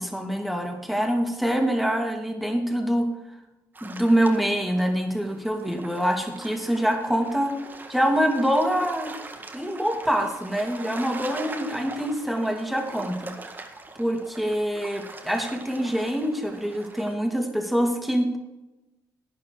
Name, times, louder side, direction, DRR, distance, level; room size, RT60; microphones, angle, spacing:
voice 1, 0.0-3.1 3.8-7.5 7.9-9.1 9.5-13.6 13.9-18.4, equal, ahead, 3 dB, 2.7 m, -25 dB
sound 1, 3.7-17.1, right 3 dB, 25° right, 1.8 m, -42 dB
12.0 x 9.4 x 4.9 m, 1.0 s
cardioid pair, 85°, 7 cm